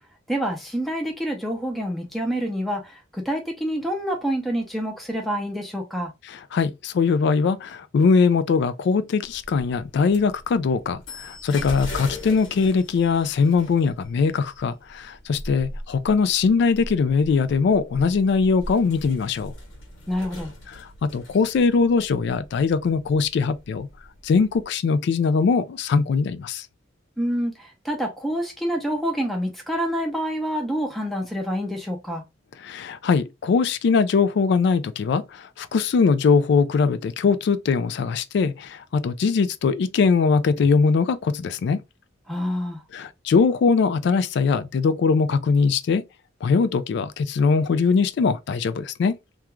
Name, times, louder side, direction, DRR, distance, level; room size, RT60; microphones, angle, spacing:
voice 1, 0.3-6.1 20.1-20.5 27.2-32.2 42.3-42.8, equal, ahead, 0.5 m, -27 dB
voice 2, 6.5-19.5 21.0-23.9 24.2-26.7 32.6-41.8 42.9-46.0 46.4-49.2, left 5 dB, 60° left, 0.3 m, -21 dB
sound 1, 9.2-24.6, left 1 dB, 80° left, 1.0 m, -40 dB
2.3 x 2.3 x 2.9 m
head